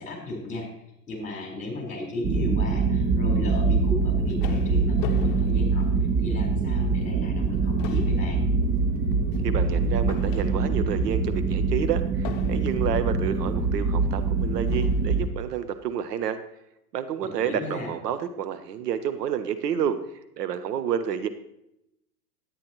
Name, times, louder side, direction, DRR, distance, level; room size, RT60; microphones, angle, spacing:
voice 1, 0.0-5.9 6.2-8.4 17.2-17.9, left 2 dB, 15° left, 0 dB, 4.3 m, -35 dB
sound 1, 2.2-15.3, right 4 dB, 20° right, 0.6 m, -24 dB
sound 2, 3.9-6.5 7.0-7.1 7.5-11.0 12.2-13.0 13.9-14.0 14.7-15.2, left 10 dB, 40° left, 0.7 m, -41 dB
voice 2, 9.4-16.4 16.9-20.0 20.4-21.3, right 8 dB, 70° right, 10 dB, 0.8 m, -29 dB
10.5 x 9.4 x 3.0 m, 0.82 s
hypercardioid pair, 95°, 49 cm